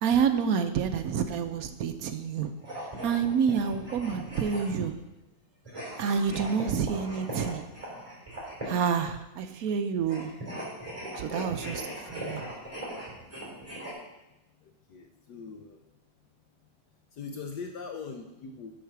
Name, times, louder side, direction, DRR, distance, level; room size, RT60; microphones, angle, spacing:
voice 1, 0.0-2.5 3.0-4.9 6.0-7.6 8.6-10.3 11.2-12.4, right 6 dB, 65° right, 8 dB, 0.9 m, -28 dB
sound 1, 2.6-4.9 5.6-8.9 10.0-13.9, right 1 dB, 15° right, 3.2 m, -39 dB
voice 2, 14.9-15.8 17.2-18.7, left 5 dB, 70° left, 4 dB, 1.3 m, -40 dB
7.5 x 6.5 x 5.9 m, 0.98 s
omnidirectional pair, 2.0 m